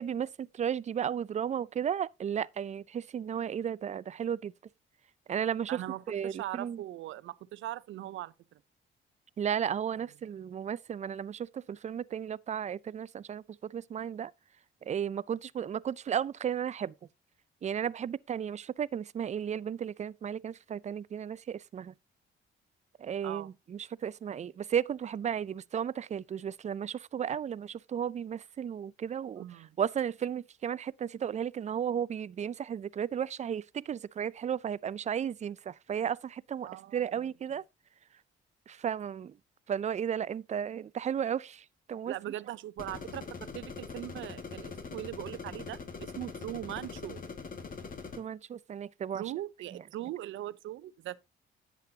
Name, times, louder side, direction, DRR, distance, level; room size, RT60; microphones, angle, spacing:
voice 1, 0.0-4.5 5.3-5.8 6.1-6.8 9.4-14.3 14.8-16.9 17.6-21.9 23.0-37.6 38.7-39.4 39.7-42.1 48.2-49.2 49.7-49.8, right 8 dB, 35° right, 0.4 m, -34 dB
voice 2, 5.7-8.3 23.2-23.5 29.4-29.8 36.6-37.0 42.1-47.2 49.1-51.2, right 14 dB, 80° right, 0.6 m, -40 dB
sound 1, 42.8-48.2, left 5 dB, 45° left, 1.8 m, -42 dB
10.5 x 8.3 x 2.8 m
cardioid pair, 90°, 20 cm